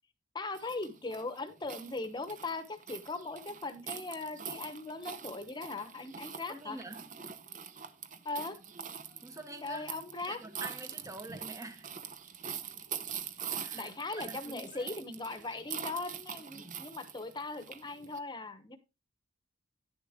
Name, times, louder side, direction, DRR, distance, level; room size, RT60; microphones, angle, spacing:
voice 1, 0.3-6.8 8.2-8.6 9.6-10.4 13.7-18.8, left 3 dB, 20° left, 1.0 m, -39 dB
sound 1, 0.5-18.2, right 8 dB, 40° right, 0.8 m, -44 dB
voice 2, 6.5-7.1 9.2-9.9 10.2-11.9 13.5-13.9 14.2-14.9 16.5-16.8, right 2 dB, 15° right, 1.0 m, -46 dB
10.5 x 7.0 x 3.6 m
head